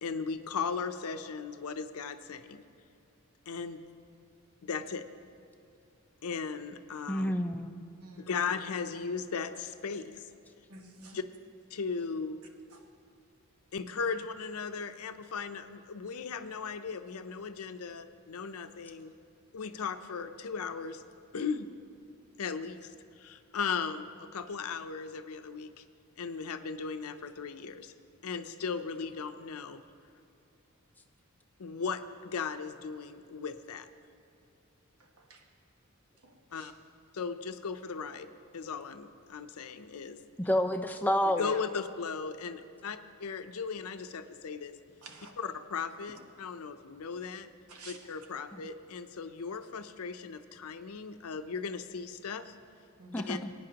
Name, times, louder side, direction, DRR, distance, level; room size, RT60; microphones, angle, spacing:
voice 1, 0.0-2.6 3.5-3.8 4.6-5.0 6.2-7.3 8.2-10.3 11.1-11.2 11.7-12.4 13.7-19.1 19.5-21.0 21.3-21.7 22.4-22.9 23.2-25.8 26.2-27.9 28.2-29.8 31.6-33.9 36.5-36.7 37.1-40.2 41.4-44.8 45.4-47.5 47.9-52.6 53.3-53.4, left 5 dB, 80° left, 10 dB, 0.5 m, -37 dB
voice 2, 7.1-7.7 40.4-41.5 48.5-48.6 53.1-53.5, left 1 dB, 10° left, 6 dB, 0.4 m, -29 dB
voice 3, 10.7-11.2 12.7-12.8 35.0-35.4 36.2-36.7 45.0-45.3 47.7-48.0 53.0-53.3, right 2 dB, 85° right, 3 dB, 1.2 m, -51 dB
20.5 x 9.5 x 2.9 m, 2.7 s
head